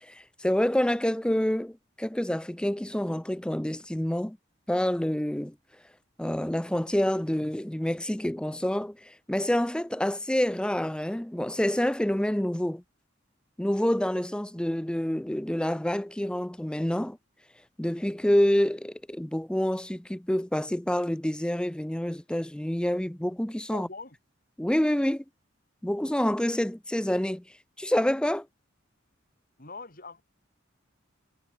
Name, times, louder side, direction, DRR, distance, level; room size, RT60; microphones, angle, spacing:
voice 1, 0.0-4.4 4.7-5.5 6.2-12.8 13.6-17.2 17.8-23.9 24.6-25.2 25.8-27.4 27.8-28.5, left 1 dB, 5° left, 0.5 m, -27 dB
voice 2, 23.7-24.2 29.6-30.2, left 3 dB, 45° left, 4.8 m, -42 dB
head